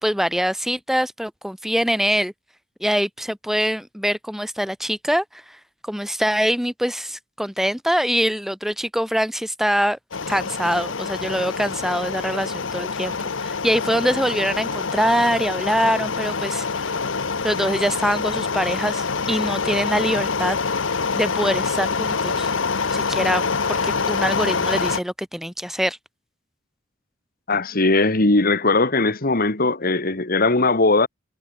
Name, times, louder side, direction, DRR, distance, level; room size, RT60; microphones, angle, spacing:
voice 1, 0.0-2.3 2.8-10.0 10.3-16.7 17.4-20.6 21.1-22.5 22.9-26.0, equal, ahead, 3.1 m, -24 dB
sound 1, 10.1-25.0, left 5 dB, 90° left, 1.1 m, -25 dB
voice 2, 27.5-31.1, left 3 dB, 50° left, 2.2 m, -19 dB
head